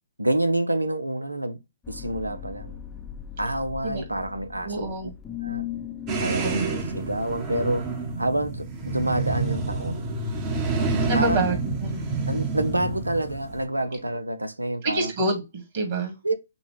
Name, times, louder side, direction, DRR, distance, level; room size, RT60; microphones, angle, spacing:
voice 1, 0.2-1.6 1.9-2.8 3.4-4.8 5.4-5.6 6.2-7.9 8.2-10.1 11.1-11.5 12.3-15.1 16.2-16.3, right 1 dB, 85° right, 0.7 m, -27 dB
sound 1, 1.8-14.2, left 11 dB, 10° left, 0.6 m, -40 dB
voice 2, 4.6-5.1 6.4-6.7 11.1-12.0 14.8-16.2, right 2 dB, 45° right, 2.1 m, -27 dB
sound 2, 6.1-13.6, right 3 dB, 25° right, 1.0 m, -28 dB
6.0 x 2.3 x 3.4 m
figure-of-eight pair, 125°, 0 cm